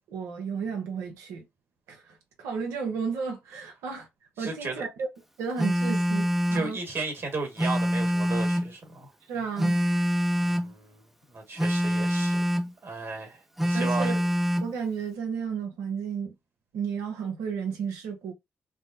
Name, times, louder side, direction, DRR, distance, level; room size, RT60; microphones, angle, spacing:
voice 1, 0.0-1.4 1.9-2.0 2.4-4.1 4.4-5.1 5.4-6.8 9.3-9.8 13.7-14.2 14.6-16.3 16.7-18.3, right 6 dB, 85° right, 0.8 m, -33 dB
voice 2, 4.4-4.8 6.5-9.1 10.4-12.4 12.8-13.4 13.6-14.1, right 3 dB, 55° right, 1.6 m, -35 dB
Telephone, 5.6-6.7 7.6-8.7 9.6-10.7 11.6-12.7 13.6-14.7, equal, 5° right, 0.5 m, -25 dB
3.4 x 2.1 x 2.6 m
supercardioid pair, 45°, 5 cm